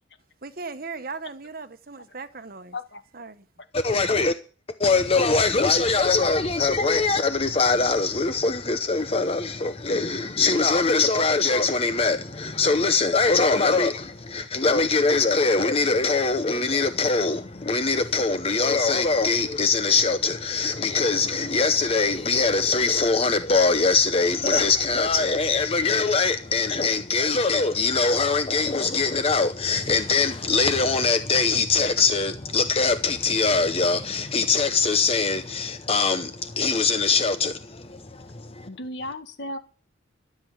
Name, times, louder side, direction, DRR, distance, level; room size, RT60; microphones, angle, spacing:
voice 1, 0.4-2.7 3.1-3.4, right 4 dB, 50° right, 1.1 m, -37 dB
voice 2, 3.7-4.3 4.8-38.7, left 4 dB, 30° left, 0.7 m, -22 dB
voice 3, 38.7-39.6, left 1 dB, 65° left, 1.7 m, -34 dB
13.5 x 7.8 x 8.9 m
head